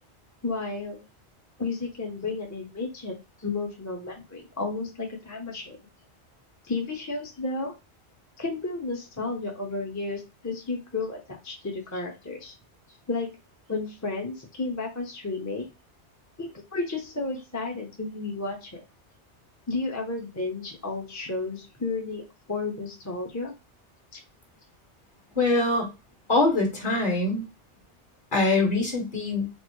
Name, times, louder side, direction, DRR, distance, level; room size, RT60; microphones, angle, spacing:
voice 1, 0.4-1.0 1.6-3.1 3.4-5.8 6.6-7.7 8.4-12.5 13.1-13.3 13.7-15.7 16.4-18.8 19.7-22.2 22.5-23.5 24.1-24.2, left 3 dB, 15° left, 0 dB, 0.7 m, -32 dB
voice 2, 25.3-25.9 26.3-27.4 28.3-29.5, left 2 dB, 45° left, 0 dB, 1.5 m, -23 dB
4.4 x 2.0 x 4.4 m, 0.27 s
omnidirectional pair, 1.2 m